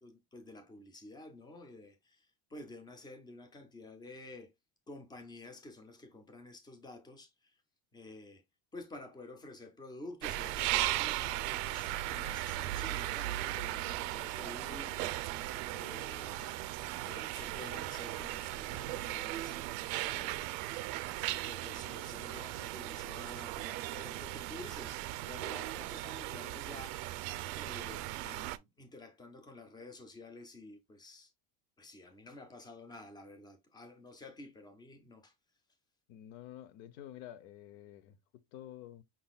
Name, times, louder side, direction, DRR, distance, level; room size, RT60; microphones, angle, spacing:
voice 1, 0.0-4.5 4.9-7.6 7.9-8.4 8.7-15.1 15.7-16.5 17.0-20.6 21.3-27.0 27.4-31.3 31.8-35.3, left 2 dB, 10° left, 0.5 m, -51 dB
sound 1, 10.2-28.6, right 16 dB, 75° right, 0.6 m, -37 dB
voice 2, 36.1-39.0, left 12 dB, 60° left, 0.9 m, -50 dB
5.6 x 3.8 x 2.3 m
cardioid pair, 160°, 49 cm